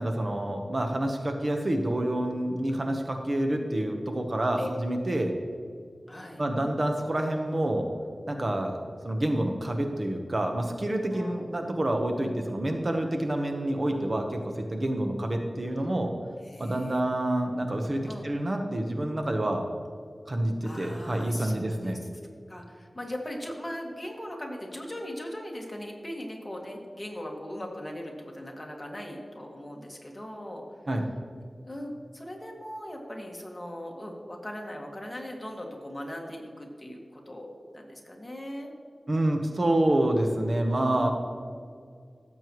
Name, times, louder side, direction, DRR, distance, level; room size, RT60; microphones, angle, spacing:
voice 1, 0.0-5.3 6.4-7.9 8.3-8.8 9.0-16.1 16.6-19.6 20.3-22.0 30.9-31.0 39.1-41.1, right 1 dB, 45° right, 4 dB, 1.0 m, -28 dB
voice 2, 6.1-6.4 11.1-11.5 16.4-17.0 17.5-17.7 18.0-18.3 20.6-22.0 22.5-30.6 31.7-38.7 40.7-41.1, left 1 dB, 20° left, 0 dB, 1.9 m, -39 dB
15.5 x 7.6 x 3.1 m, 2.1 s
wide cardioid pair, 80°, 0 cm